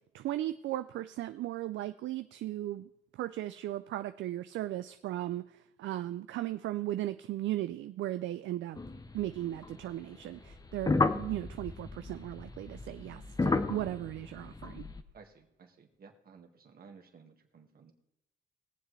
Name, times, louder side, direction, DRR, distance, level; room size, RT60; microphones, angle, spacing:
voice 1, 0.1-2.9 3.2-5.5 5.8-8.8 9.1-14.8, right 14 dB, 70° right, 11 dB, 0.4 m, -36 dB
sound 1, 8.8-9.8 10.4-15.0, left 3 dB, 20° left, 0.7 m, -33 dB
voice 2, 15.1-17.9, right 5 dB, 50° right, 4 dB, 1.8 m, -56 dB
21.0 x 7.4 x 3.3 m, 0.88 s
cardioid pair, 90°, 20 cm